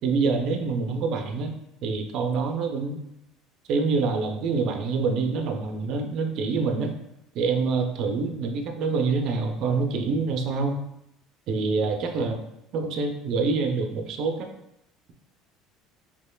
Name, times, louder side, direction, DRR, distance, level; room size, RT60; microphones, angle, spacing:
voice 1, 0.0-1.5 1.8-3.0 3.7-6.9 7.3-10.8 11.5-12.4 12.7-14.5, right 4 dB, 60° right, 4 dB, 0.5 m, -26 dB
4.2 x 2.8 x 2.3 m, 0.81 s
supercardioid pair, 95°, 0 cm